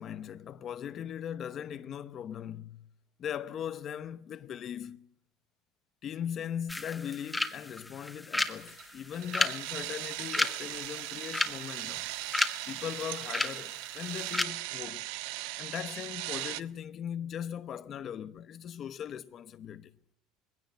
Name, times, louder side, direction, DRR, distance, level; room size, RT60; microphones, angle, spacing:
voice 1, 0.0-2.9 3.2-5.1 6.0-12.1 12.7-15.1 15.6-19.9, left 9 dB, 35° left, 0.8 m, -39 dB
sound 1, 6.7-14.4, left 2 dB, 5° left, 1.7 m, -34 dB
sound 2, 8.6-16.6, right 18 dB, 75° right, 0.8 m, -39 dB
20.5 x 17.0 x 9.1 m
cardioid pair, 135°, 0 cm